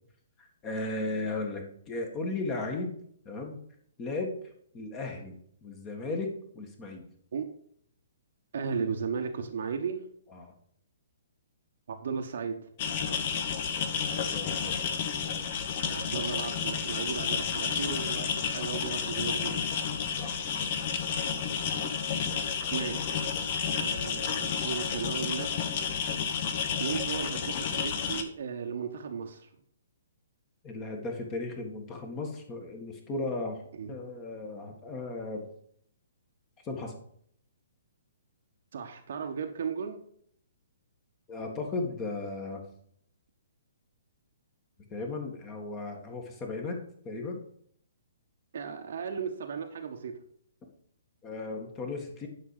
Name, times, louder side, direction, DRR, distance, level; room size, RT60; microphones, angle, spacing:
voice 1, 0.4-3.0 3.3-3.6 4.0-4.3 4.7-7.1 10.3-10.5 14.3-14.9 20.2-20.4 30.6-33.6 33.9-35.5 36.6-36.9 41.3-42.6 44.9-46.8 47.0-47.4 51.2-52.3, left 2 dB, 20° left, 3 dB, 1.8 m, -36 dB
voice 2, 8.5-10.0 11.9-12.7 15.9-19.6 22.7-23.1 23.7-25.7 26.8-29.5 33.8-34.0 38.7-40.0 48.5-50.1, right 6 dB, 55° right, 4 dB, 1.0 m, -35 dB
sound 1, 12.8-28.2, left 6 dB, 40° left, 1.0 m, -31 dB
10.5 x 5.2 x 5.0 m, 0.65 s
figure-of-eight pair, 125°, 0 cm